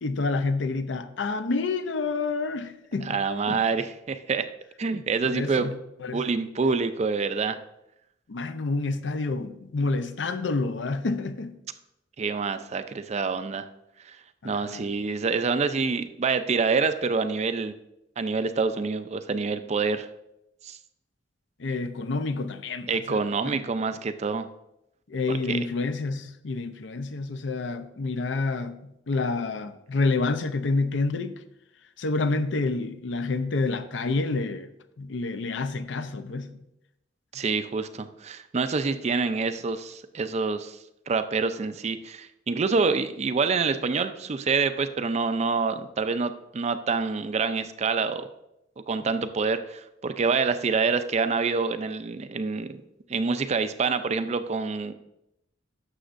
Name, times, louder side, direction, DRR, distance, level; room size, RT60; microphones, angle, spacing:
voice 1, 0.0-3.2 3.5-3.6 5.2-6.2 8.3-11.6 14.4-14.8 21.6-23.6 25.1-31.4 32.0-34.7 35.0-36.6, left 3 dB, 70° left, 0.6 m, -28 dB
voice 2, 3.1-4.5 4.8-5.7 6.1-7.6 12.2-13.7 14.0-14.2 14.4-17.7 18.2-20.1 20.6-20.8 22.9-24.5 25.3-25.6 37.3-40.8 41.1-48.3 48.9-52.7 53.1-54.9, right 4 dB, 35° right, 0.4 m, -26 dB
11.5 x 6.9 x 2.5 m
head